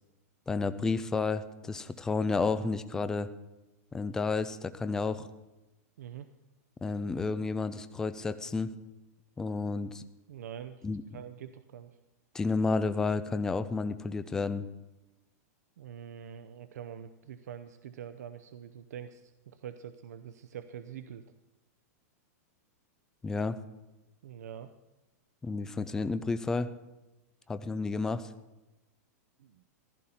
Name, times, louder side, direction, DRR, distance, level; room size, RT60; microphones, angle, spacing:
voice 1, 0.5-3.3 3.9-5.3 6.8-8.7 9.4-10.0 10.8-11.0 12.3-14.7 23.2-23.6 25.4-26.7 27.5-28.3, left 4 dB, 5° left, 12 dB, 0.4 m, -31 dB
voice 2, 10.3-10.9 11.1-11.9 15.8-19.2 19.5-21.2 24.2-24.7 29.4-29.6, right 9 dB, 85° right, 10 dB, 0.6 m, -44 dB
15.0 x 14.0 x 4.3 m, 1.0 s
supercardioid pair, 170°, 9 cm